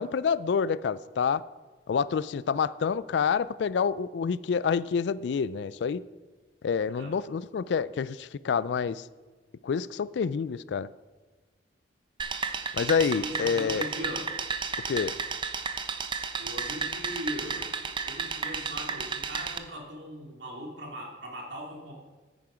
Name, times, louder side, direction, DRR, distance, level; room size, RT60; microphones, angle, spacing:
voice 1, 0.0-1.4 1.9-6.0 6.6-9.0 9.6-10.9 12.7-13.9 14.9-15.1, left 6 dB, 65° left, 0.3 m, -28 dB
sound 1, 12.2-19.6, right 5 dB, 25° right, 0.5 m, -33 dB
voice 2, 13.0-14.3 16.4-17.7 18.1-21.9, equal, 70° right, 2.4 m, -39 dB
9.4 x 9.1 x 5.0 m
head